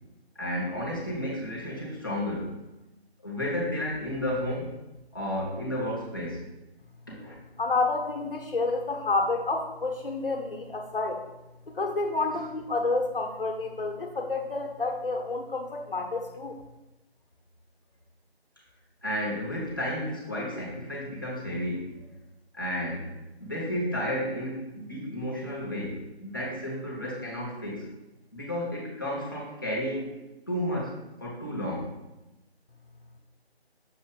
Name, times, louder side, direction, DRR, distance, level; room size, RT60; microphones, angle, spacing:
voice 1, 0.3-2.5 3.2-4.7 5.1-6.5 7.1-7.4 19.0-21.9 22.5-23.1 23.4-27.9 28.3-30.2 30.5-31.9, equal, 20° left, -5 dB, 0.8 m, -32 dB
voice 2, 7.6-11.2 11.7-16.5, left 3 dB, 55° left, 2 dB, 1.0 m, -29 dB
6.4 x 2.9 x 5.2 m, 0.99 s
figure-of-eight pair, 160°, 33 cm